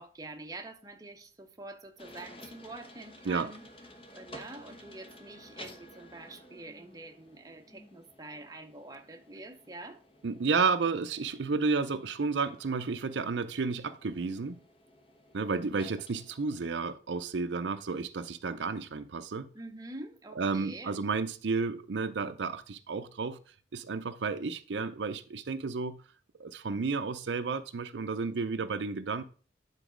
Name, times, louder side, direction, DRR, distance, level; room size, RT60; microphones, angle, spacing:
voice 1, 0.0-3.7 4.1-10.0 19.5-20.9, right 2 dB, 20° right, 0.7 m, -46 dB
sound 1, 2.0-16.7, left 1 dB, 30° left, 1.1 m, -53 dB
voice 2, 10.2-14.6 15.3-19.5 20.4-23.4 23.7-26.0 26.4-29.2, right 4 dB, 75° right, 0.5 m, -32 dB
9.2 x 4.1 x 4.9 m
head